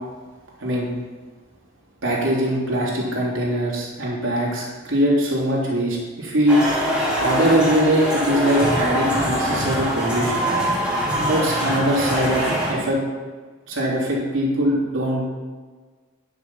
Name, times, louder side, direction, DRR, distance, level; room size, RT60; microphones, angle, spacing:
voice 1, 0.6-0.9 2.0-6.6 7.2-10.5 11.2-13.0 13.7-15.3, equal, 90° right, -5 dB, 3.3 m, -22 dB
sound 1, 6.5-12.8, equal, 5° right, 2.8 m, -23 dB
10.5 x 6.2 x 5.7 m, 1.5 s
head